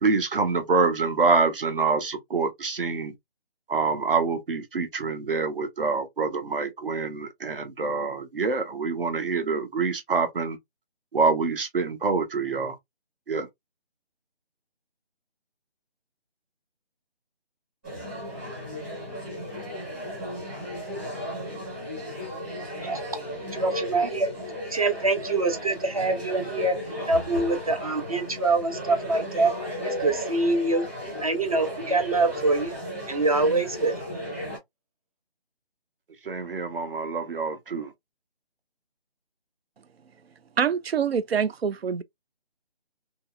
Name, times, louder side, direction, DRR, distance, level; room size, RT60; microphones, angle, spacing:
voice 1, 0.0-3.1 3.7-10.6 11.1-12.8 13.3-13.5 36.2-37.9, right 4 dB, 60° right, 1.0 m, -26 dB
sound 1, 17.8-34.6, equal, 10° right, 1.1 m, -35 dB
voice 2, 23.4-24.3 24.7-26.7 27.1-29.5 29.8-30.8 31.2-32.7 33.1-34.0, right 3 dB, 35° right, 0.6 m, -24 dB
voice 3, 40.6-42.0, right 7 dB, 75° right, 0.5 m, -25 dB
2.9 x 2.7 x 2.3 m
figure-of-eight pair, 170°, 31 cm